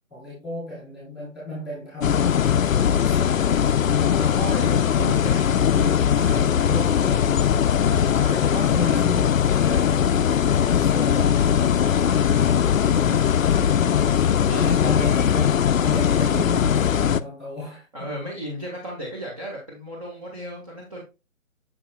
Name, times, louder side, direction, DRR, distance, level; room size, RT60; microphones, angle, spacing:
voice 1, 0.1-2.4 2.8-3.5 4.7-4.8 6.1-7.4 8.3-12.8 14.5-18.1, left 1 dB, ahead, 3.8 m, -34 dB
sound 1, 2.0-17.2, left 8 dB, 70° left, 0.6 m, -20 dB
voice 2, 3.0-3.4 4.1-6.0 7.8-9.0 9.4-9.8 12.9-13.9 14.5-15.0 17.9-21.0, equal, 25° right, 1.5 m, -35 dB
7.1 x 6.6 x 2.2 m
hypercardioid pair, 165°, 41 cm